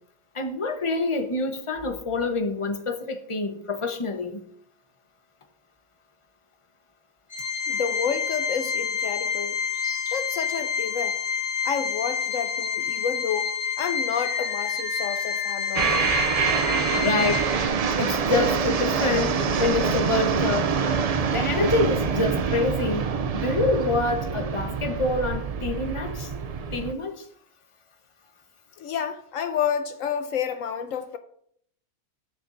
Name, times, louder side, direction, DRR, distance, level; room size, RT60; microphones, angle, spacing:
voice 1, 0.3-4.4 16.9-17.5 18.0-20.7 21.3-26.3 26.7-27.2, left 3 dB, 25° left, 1.1 m, -26 dB
Organ, 7.3-17.9, left 7 dB, 15° right, 2.5 m, -28 dB
voice 2, 7.7-9.6 10.1-11.2 11.6-13.5 13.8-16.1 28.8-31.2, left 7 dB, 75° left, 1.1 m, -30 dB
Animal, 9.7-10.1 10.6-10.7 12.3-13.1 13.7-17.7, left 1 dB, 45° left, 5.6 m, -40 dB
sound 1, 15.7-26.9, right 6 dB, 70° right, 0.3 m, -25 dB
20.0 x 6.9 x 2.6 m
omnidirectional pair, 1.4 m